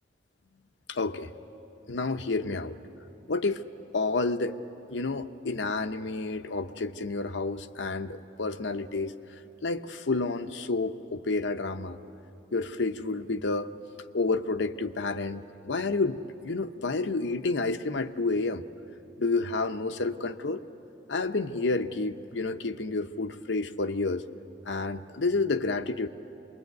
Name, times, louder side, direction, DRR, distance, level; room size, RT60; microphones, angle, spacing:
voice 1, 0.9-1.3 1.9-2.8 3.3-3.7 3.9-4.6 4.9-9.1 9.6-12.0 12.5-13.7 14.1-18.7 19.2-20.6 21.1-24.3 24.7-26.1, left 3 dB, 75° left, 9 dB, 0.8 m, -30 dB
26.5 x 21.5 x 9.3 m, 3.0 s
head